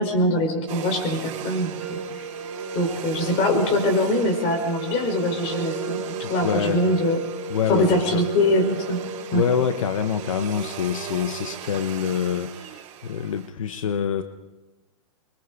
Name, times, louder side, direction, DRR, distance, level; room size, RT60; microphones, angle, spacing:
voice 1, 0.0-2.0 2.7-7.2 7.7-9.0 9.3-9.4, left 1 dB, 40° left, 4 dB, 5.8 m, -23 dB
Domestic sounds home sounds, 0.7-13.5, right 11 dB, 40° right, 4.0 m, -37 dB
sound 1, 1.7-9.9, equal, 10° right, 2.1 m, -36 dB
voice 2, 6.2-6.8 7.5-8.2 9.3-14.2, left 7 dB, 85° left, 9 dB, 1.2 m, -26 dB
25.5 x 22.5 x 4.9 m, 1.1 s
hypercardioid pair, 140°, 16 cm